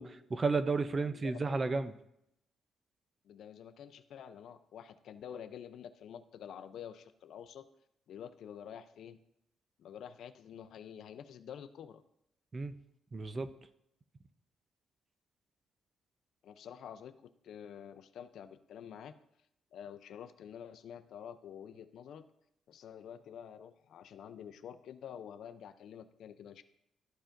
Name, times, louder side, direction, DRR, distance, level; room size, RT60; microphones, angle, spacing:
voice 1, 0.0-1.9 12.5-12.7 13.1-13.5, right 4 dB, 35° right, 12 dB, 0.5 m, -32 dB
voice 2, 1.0-1.6 3.2-7.7 8.1-9.2 9.8-12.0 16.4-19.1 19.7-22.3 22.7-26.6, left 8 dB, 70° left, 11 dB, 0.5 m, -48 dB
13.0 x 4.8 x 2.6 m, 0.80 s
cardioid pair, 90°, 0 cm